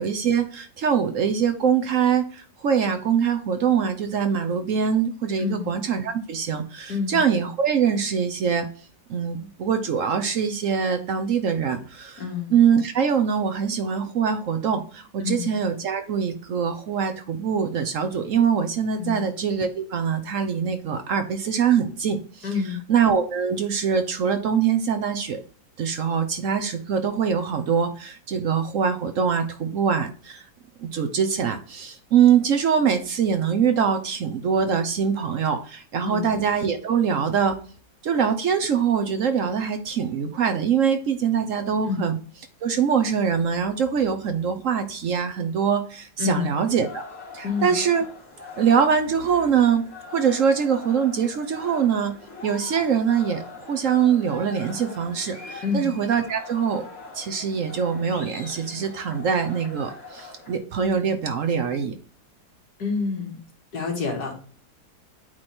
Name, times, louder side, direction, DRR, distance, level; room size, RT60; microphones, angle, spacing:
voice 1, 0.0-8.7 9.1-12.2 12.5-22.5 22.9-25.4 25.8-30.5 30.8-37.6 38.0-42.2 42.6-47.0 47.3-48.0 48.6-49.8 50.1-52.1 52.4-56.9 57.1-61.9, right 7 dB, 60° right, 8 dB, 1.0 m, -23 dB
voice 2, 12.2-12.5 15.2-15.5 19.0-19.2 22.4-22.8 36.0-36.3 41.9-42.1 46.2-46.5 47.4-47.7 55.6-55.9 62.8-63.4 63.7-64.3, left 5 dB, 70° left, 1 dB, 2.3 m, -27 dB
sound 1, 46.3-60.6, left 3 dB, 45° left, 2.6 m, -42 dB
8.6 x 3.2 x 4.3 m, 0.41 s
omnidirectional pair, 1.7 m